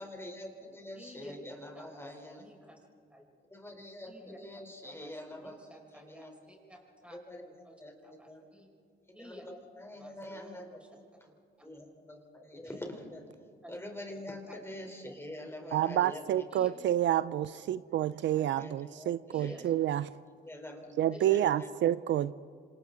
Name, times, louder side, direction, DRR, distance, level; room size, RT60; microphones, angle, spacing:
voice 1, 0.0-2.4 3.5-4.1 4.4-6.3 7.3-8.4 9.2-11.0 11.6-13.2 13.7-16.4 18.3-19.6 20.4-21.7, left 1 dB, 10° left, 2 dB, 4.0 m, -45 dB
voice 2, 0.9-1.3 1.7-2.8 3.1-3.2 4.1-4.4 4.8-7.2 7.4-7.8 8.0-8.7 9.1-9.5 9.9-10.9 11.2-11.3 12.6-12.8 13.6-13.8 14.5-14.6 16.5-16.7 19.3-19.7 21.1-21.3, left 1 dB, 5° right, -1 dB, 6.0 m, -53 dB
voice 3, 15.7-20.1 21.0-22.3, right 12 dB, 70° right, 16 dB, 0.5 m, -29 dB
27.5 x 26.5 x 4.0 m, 2.3 s
cardioid pair, 90°, 20 cm